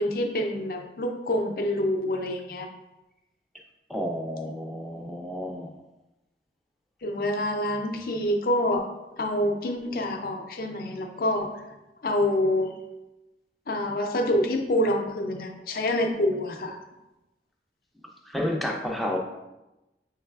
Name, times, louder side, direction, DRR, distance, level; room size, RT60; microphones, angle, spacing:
voice 1, 0.0-2.7 7.0-8.9 9.2-11.5 12.0-12.7 13.7-16.8, left 1 dB, 55° left, 4 dB, 0.5 m, -26 dB
voice 2, 3.9-5.7 18.3-19.2, left 1 dB, ahead, -1 dB, 0.4 m, -30 dB
5.4 x 3.2 x 2.3 m, 0.99 s
head